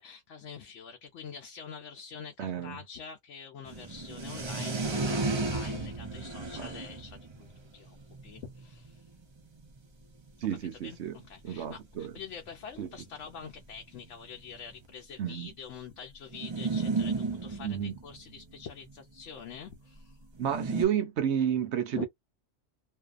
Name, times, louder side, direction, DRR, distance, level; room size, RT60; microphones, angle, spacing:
voice 1, 0.0-8.0 8.2-9.0 10.4-10.5 10.8-20.2 21.9-22.1, left 7 dB, 80° left, 1.0 m, -45 dB
voice 2, 2.4-2.8 6.4-6.8 10.4-11.2 11.4-12.1 12.8-12.9 15.2-15.5 17.6-18.0 20.4-22.1, right 9 dB, 70° right, 0.9 m, -31 dB
sound 1, 3.7-9.8 10.4-10.5 10.7-10.8 11.0-11.2 12.1-12.2 12.5-12.6 13.3-14.9 16.3-18.9 20.4-20.9, right 3 dB, 35° right, 0.4 m, -34 dB
2.6 x 2.2 x 2.4 m
omnidirectional pair, 1.2 m